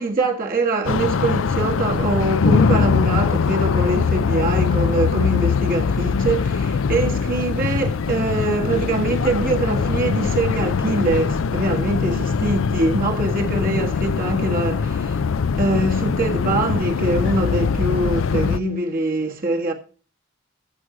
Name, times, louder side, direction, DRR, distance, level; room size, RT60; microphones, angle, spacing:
voice 1, 0.0-15.2 15.6-19.7, right 2 dB, 45° right, 1.5 m, -23 dB
sound 1, 0.8-18.6, left 5 dB, 80° left, 0.5 m, -22 dB
14.0 x 6.2 x 4.9 m
head